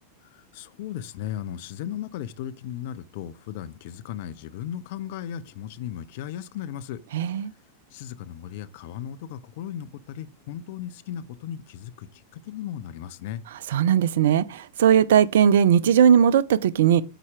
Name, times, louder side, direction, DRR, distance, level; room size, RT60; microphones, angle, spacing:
voice 1, 0.3-7.0 7.9-13.4, left 10 dB, 50° left, 0.6 m, -36 dB
voice 2, 7.1-7.5 13.7-17.0, right 8 dB, 60° right, 0.5 m, -18 dB
9.0 x 4.2 x 4.8 m
figure-of-eight pair, 90°, 0 cm